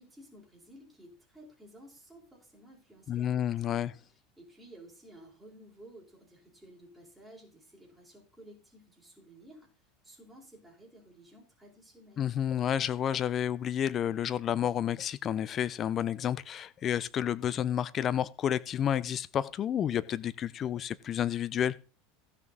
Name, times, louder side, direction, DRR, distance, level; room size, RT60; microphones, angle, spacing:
voice 1, 0.0-3.6 3.9-12.3, right 1 dB, 5° right, 4.3 m, -54 dB
voice 2, 3.1-3.9 12.2-21.8, left 10 dB, 40° left, 0.6 m, -30 dB
16.0 x 6.1 x 4.0 m
hypercardioid pair, 100°, 0 cm